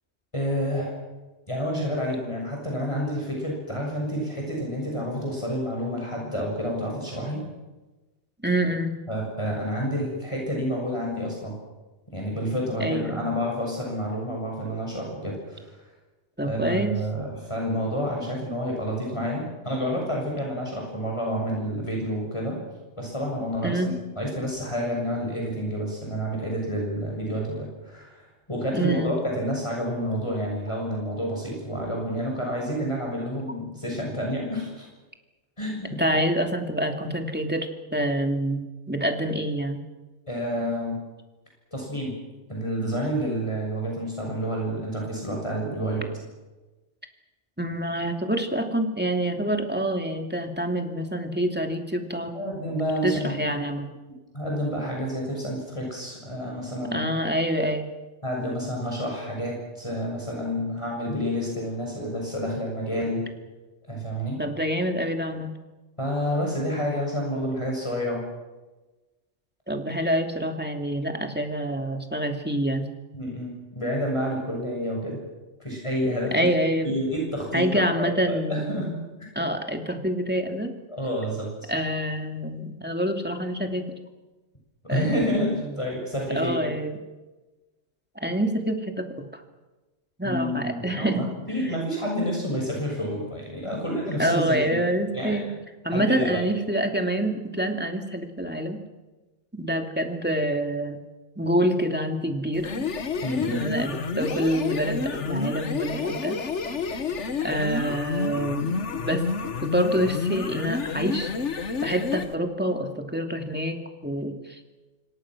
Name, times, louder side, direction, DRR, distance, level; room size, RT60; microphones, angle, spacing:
voice 1, 0.3-0.9 1.5-7.4 9.1-11.6 12.1-15.8 16.4-22.6 23.0-28.2 28.5-34.9 35.6-36.2 40.3-41.0 41.7-42.2 42.5-46.1 52.3-53.7 54.3-57.0 58.2-63.3 63.9-64.4 66.0-68.3 73.1-75.2 75.6-76.5 76.8-79.0 80.9-81.5 84.9-86.7 90.2-94.8 95.1-95.4 95.9-96.4 103.2-103.7, equal, 25° left, -1 dB, 6.6 m, -29 dB
voice 2, 8.4-9.0 12.8-13.3 16.4-17.0 23.6-23.9 28.7-29.2 35.9-39.8 47.6-52.3 53.0-53.8 56.9-57.9 64.4-65.5 69.7-72.8 76.3-76.9 77.5-78.8 79.4-80.7 81.7-83.9 84.9-85.7 86.3-87.0 88.2-89.4 90.2-91.3 94.2-95.5 95.8-98.8 99.5-101.0 101.4-102.9 103.5-106.4 107.4-109.3 109.6-111.4 111.8-114.6, right 1 dB, 10° right, 4 dB, 2.7 m, -26 dB
sound 1, 102.5-112.3, left 5 dB, 85° left, 1.6 m, -29 dB
27.0 x 25.0 x 6.3 m, 1.1 s
omnidirectional pair, 1.2 m